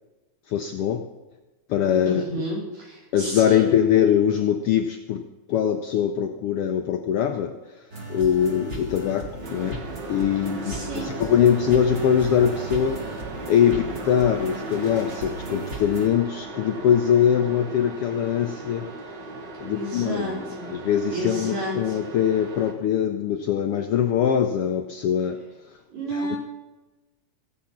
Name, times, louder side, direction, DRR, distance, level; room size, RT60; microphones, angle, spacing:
voice 1, 0.5-1.0 1.7-2.2 3.1-5.2 5.5-7.6 8.1-9.8 10.1-13.0 13.5-18.9 19.6-20.4 20.7-25.4 26.3-26.4, left 9 dB, 75° left, 6 dB, 1.3 m, -22 dB
voice 2, 2.1-3.7 10.6-11.1 13.6-13.9 19.6-20.8 21.1-22.0 25.9-26.4, right 1 dB, 70° right, -4 dB, 5.3 m, -31 dB
sound 1, 7.9-16.1, right 2 dB, 25° right, 2.0 m, -37 dB
sound 2, 9.4-22.7, right 3 dB, 45° right, 1.8 m, -37 dB
16.5 x 8.5 x 5.8 m, 1.1 s
omnidirectional pair, 3.3 m